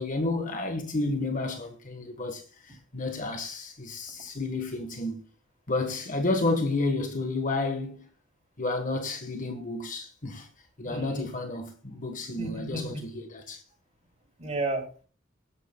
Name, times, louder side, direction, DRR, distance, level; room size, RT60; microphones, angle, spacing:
voice 1, 0.0-5.2 5.7-8.0 8.6-10.5 10.8-13.6, left 2 dB, 40° left, 1.3 m, -31 dB
voice 2, 10.8-11.3 12.4-13.0 14.4-15.0, right 2 dB, 35° right, 2.9 m, -33 dB
20.5 x 11.0 x 2.3 m
head